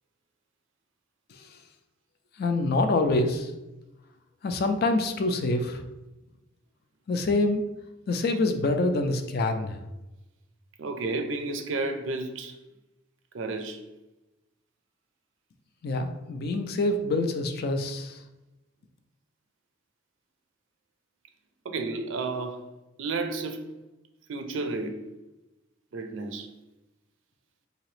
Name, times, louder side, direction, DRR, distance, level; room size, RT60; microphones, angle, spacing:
voice 1, 2.4-3.5 4.4-5.8 7.1-7.6 8.1-9.8 15.8-18.2, left 2 dB, 55° left, 7 dB, 0.4 m, -26 dB
voice 2, 10.8-12.6 13.3-13.8 21.6-22.6 23.0-23.7 24.3-25.1 25.9-26.5, right 3 dB, 75° right, 6 dB, 0.5 m, -32 dB
3.9 x 2.8 x 3.2 m, 1.0 s
head